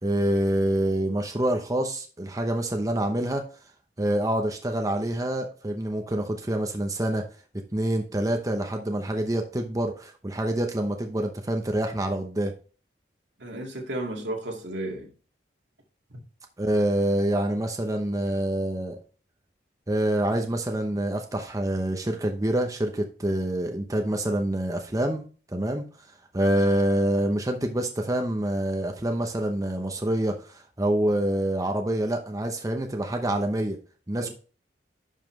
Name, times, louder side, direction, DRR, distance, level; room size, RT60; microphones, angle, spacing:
voice 1, 0.0-3.4 4.0-7.2 7.7-12.5 16.6-19.0 19.9-25.9 26.3-33.8 34.1-34.3, right 1 dB, 20° right, 0.9 m, -26 dB
voice 2, 13.4-15.1 16.1-16.2 34.2-34.3, right 1 dB, 85° right, 2.1 m, -33 dB
10.5 x 5.6 x 3.3 m
head